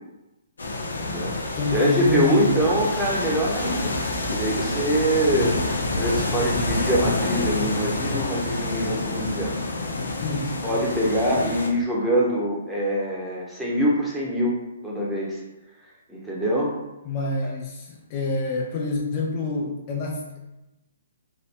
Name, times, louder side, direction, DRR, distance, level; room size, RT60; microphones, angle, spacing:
sound 1, 0.6-11.7, left 2 dB, 85° left, 0.7 m, -28 dB
voice 1, 1.0-5.5 6.0-9.6 10.6-14.6 14.8-15.4 16.1-16.7 17.4-17.5, equal, 5° right, -5 dB, 0.8 m, -24 dB
voice 2, 1.5-2.6 10.2-10.6 17.1-20.4, left 3 dB, 35° left, -1 dB, 0.5 m, -27 dB
3.3 x 2.2 x 4.3 m, 0.98 s
hypercardioid pair, 140°, 0 cm